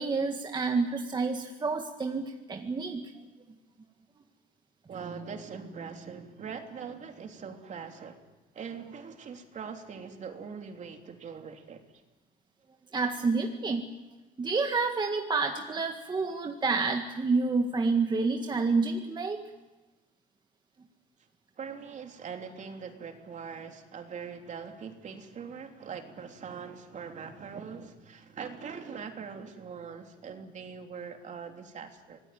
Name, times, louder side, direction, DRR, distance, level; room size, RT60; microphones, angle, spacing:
voice 1, 0.0-3.1 12.9-13.8 14.4-19.5, right 4 dB, 25° right, 4 dB, 1.9 m, -29 dB
voice 2, 4.9-8.3 8.5-11.8 21.6-32.2, right 6 dB, 45° right, 4 dB, 3.1 m, -42 dB
25.5 x 19.5 x 9.2 m, 1.1 s
cardioid pair, 110°, 17 cm